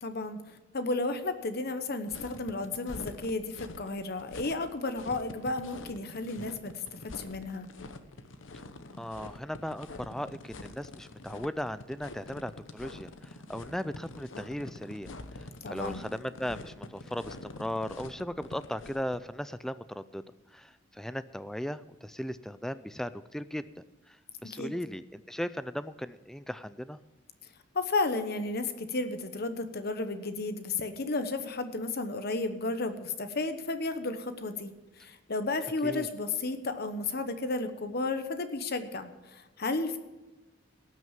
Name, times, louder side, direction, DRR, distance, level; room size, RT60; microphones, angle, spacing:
voice 1, 0.0-7.7 15.6-16.0 24.5-24.7 27.7-40.0, left 3 dB, 55° left, 9 dB, 1.0 m, -33 dB
sound 1, 2.1-19.2, left 2 dB, 80° left, 0.9 m, -46 dB
voice 2, 9.0-15.1 15.4-20.2 20.5-24.2 24.4-27.0 35.8-36.1, equal, ahead, 13 dB, 0.3 m, -37 dB
18.0 x 6.1 x 7.4 m, 1.2 s
head